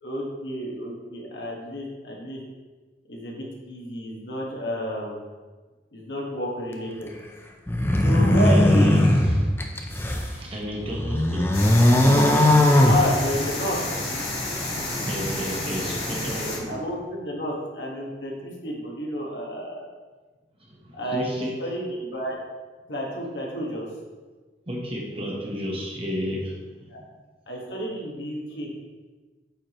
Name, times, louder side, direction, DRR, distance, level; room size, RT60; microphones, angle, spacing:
voice 1, 0.0-2.4 3.1-5.3 5.9-7.1 8.0-8.9 12.8-13.8 16.7-19.9 20.9-22.4 22.9-23.8 26.9-27.0 27.5-28.7, equal, 70° left, -2 dB, 1.5 m, -30 dB
sound 1, 7.7-10.3 10.8-13.6, left 1 dB, 15° left, 0.5 m, -19 dB
voice 2, 8.4-11.5 14.9-16.9 20.6-21.6 24.7-27.1, equal, 35° right, -1 dB, 1.2 m, -32 dB
sound 2, 11.5-16.6, left 2 dB, 35° left, 1.9 m, -30 dB
8.8 x 4.8 x 3.0 m, 1.3 s
head